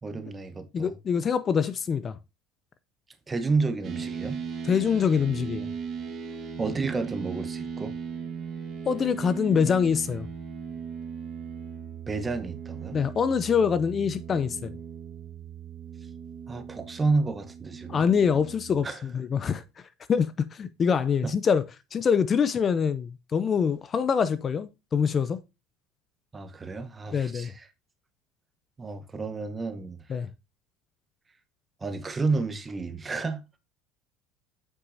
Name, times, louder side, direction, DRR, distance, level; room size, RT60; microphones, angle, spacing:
voice 1, 0.0-0.9 3.3-4.4 6.6-7.9 12.1-13.0 16.5-18.0 18.8-19.0 21.2-21.3 26.3-27.7 28.8-30.2 31.8-33.4, right 3 dB, 20° right, 0.9 m, -30 dB
voice 2, 0.7-2.2 4.6-5.7 8.9-10.3 12.9-14.7 17.9-19.6 20.1-21.6 21.9-25.4 27.1-27.5 30.1-30.3, left 6 dB, 35° left, 0.5 m, -25 dB
sound 1, 3.8-18.9, right 6 dB, 40° right, 1.5 m, -38 dB
8.2 x 5.8 x 2.7 m
supercardioid pair, 105°, 0 cm